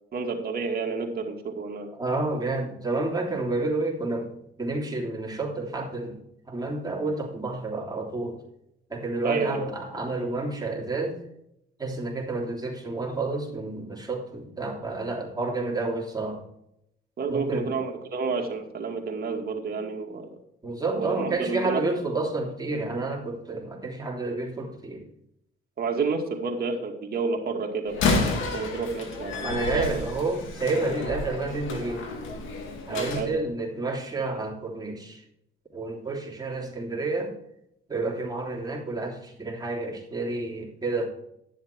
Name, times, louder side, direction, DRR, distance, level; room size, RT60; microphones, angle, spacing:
voice 1, 0.1-1.9 9.2-9.7 17.2-20.4 20.9-22.0 25.8-27.9 28.3-30.0 32.9-33.3, right 4 dB, 50° right, 1 dB, 2.4 m, -30 dB
voice 2, 1.9-4.3 4.6-8.4 8.9-11.2 11.8-16.4 17.3-17.8 20.6-25.1 29.4-32.0 32.9-35.2 35.7-37.3 37.9-41.1, right 2 dB, 20° right, -2 dB, 3.2 m, -30 dB
Slam, 27.9-33.3, left 3 dB, 85° left, 2.1 m, -30 dB
11.5 x 7.2 x 4.6 m, 0.79 s
cardioid pair, 90°, 20 cm